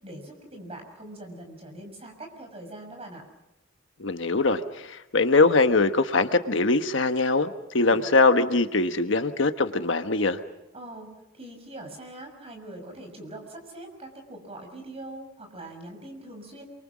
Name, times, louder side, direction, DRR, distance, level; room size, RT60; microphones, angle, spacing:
voice 1, 0.0-3.2 7.8-8.0 10.7-11.1 11.3-16.6, right 1 dB, 30° right, 4 dB, 6.5 m, -42 dB
voice 2, 4.0-10.4, left 3 dB, 70° left, 8 dB, 1.3 m, -22 dB
27.5 x 24.0 x 6.3 m, 0.94 s
head